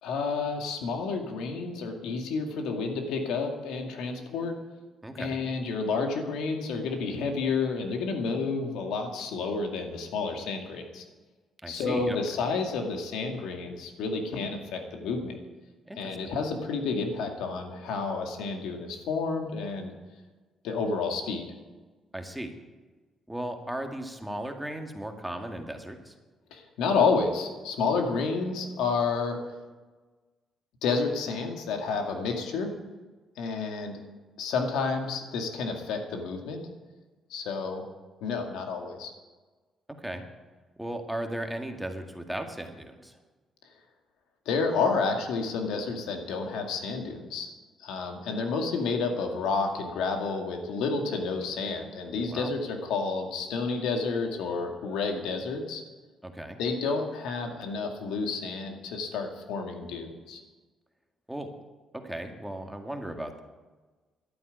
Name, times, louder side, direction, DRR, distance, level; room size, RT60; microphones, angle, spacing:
voice 1, 0.0-4.5 5.2-11.0 11.7-15.4 16.0-19.9 20.6-21.5 26.5-29.4 30.8-32.7 33.4-33.9 34.4-36.6 37.3-37.8 38.2-39.1 44.5-47.5 47.8-55.8 56.6-60.4, left 4 dB, 90° left, 4 dB, 2.2 m, -30 dB
voice 2, 5.0-5.4 11.6-12.2 15.9-16.2 22.1-22.6 23.3-26.1 40.0-40.2 40.8-43.2 52.3-52.5 56.2-56.6 61.3-61.5 61.9-63.4, right 1 dB, 5° right, 4 dB, 1.9 m, -36 dB
12.0 x 9.2 x 9.5 m, 1.3 s
cardioid pair, 90°, 0 cm